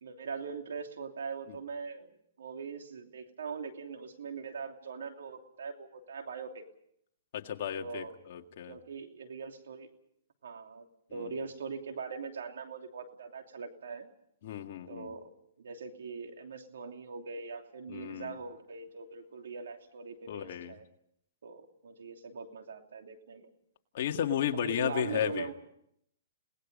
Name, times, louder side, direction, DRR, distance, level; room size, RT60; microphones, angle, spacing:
voice 1, 0.0-6.6 7.8-8.2 8.7-9.9 10.4-10.8 11.1-14.1 14.9-15.3 15.6-20.8 21.4-23.5 24.5-25.5, right 5 dB, 80° right, 5 dB, 2.9 m, -41 dB
voice 2, 7.3-8.8 11.1-11.3 14.4-15.1 17.9-18.4 20.3-20.7 23.9-25.5, left 9 dB, 55° left, 5 dB, 1.9 m, -34 dB
29.5 x 18.5 x 5.4 m, 0.74 s
hypercardioid pair, 150°, 0 cm